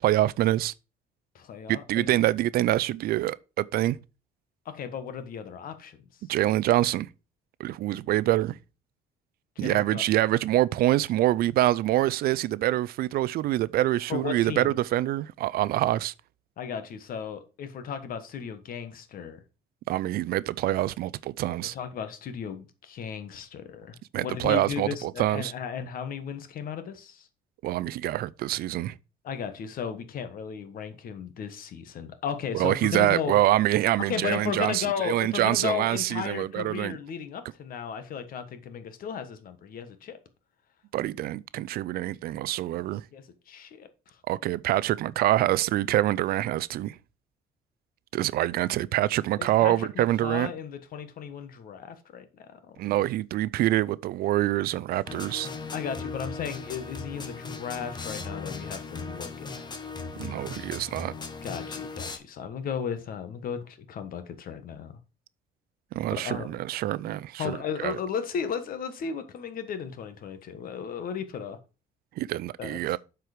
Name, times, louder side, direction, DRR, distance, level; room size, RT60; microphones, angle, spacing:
voice 1, 0.0-0.7 1.7-4.0 6.3-7.1 7.6-8.6 9.6-16.1 19.9-21.7 24.1-25.5 27.6-29.0 32.5-37.0 40.9-43.0 44.3-47.0 48.1-50.5 52.8-55.5 60.2-61.1 66.0-68.0 72.2-73.0, right 14 dB, 65° right, 0.4 m, -25 dB
voice 2, 1.3-2.2 4.6-6.0 9.6-10.0 14.1-14.7 16.6-19.4 21.7-27.3 29.2-33.4 34.1-40.2 43.1-44.2 49.4-53.0 55.7-59.7 61.4-65.0 66.2-66.6 67.4-71.6 72.6-72.8, left 7 dB, 55° left, 1.3 m, -35 dB
sound 1, 55.1-62.2, left 4 dB, 25° left, 1.1 m, -38 dB
7.7 x 4.7 x 5.0 m
cardioid pair, 110°, 17 cm